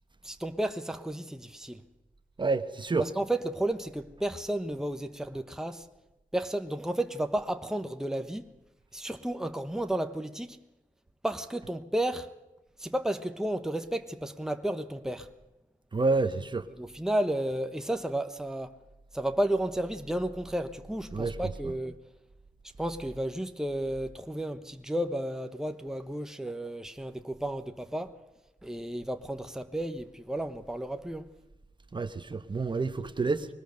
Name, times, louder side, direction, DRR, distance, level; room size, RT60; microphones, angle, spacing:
voice 1, 0.2-1.8 3.0-5.8 6.3-8.5 8.9-10.6 11.2-12.3 12.8-15.3 16.8-18.8 19.1-22.0 22.8-28.1 28.6-31.3, right 1 dB, 5° right, 1.1 m, -32 dB
voice 2, 2.4-3.0 15.9-16.6 21.1-21.4 31.9-33.5, right 3 dB, 35° right, 1.1 m, -28 dB
21.5 x 19.5 x 6.5 m
wide cardioid pair, 115°, 14 cm